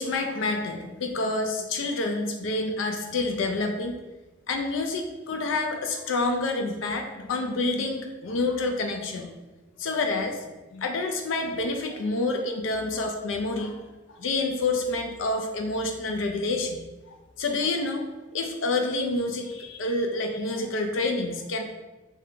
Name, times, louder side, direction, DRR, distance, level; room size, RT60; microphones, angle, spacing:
voice 1, 0.0-3.9 4.5-9.3 9.8-10.4 10.7-13.8 14.2-16.8 17.1-18.1 18.3-21.6, left 2 dB, 75° left, 4 dB, 0.4 m, -28 dB
3.3 x 2.7 x 3.7 m, 1.1 s
head